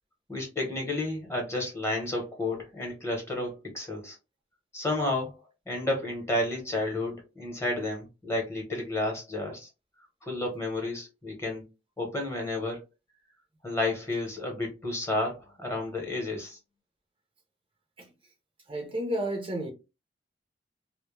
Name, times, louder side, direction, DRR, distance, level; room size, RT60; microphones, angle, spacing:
voice 1, 0.3-4.2 4.7-5.4 5.7-9.7 10.2-11.6 12.0-12.8 13.6-16.6, left 2 dB, 15° left, 0.8 m, -31 dB
voice 2, 18.7-19.7, right 1 dB, 30° right, 0.5 m, -31 dB
2.1 x 2.1 x 3.1 m
head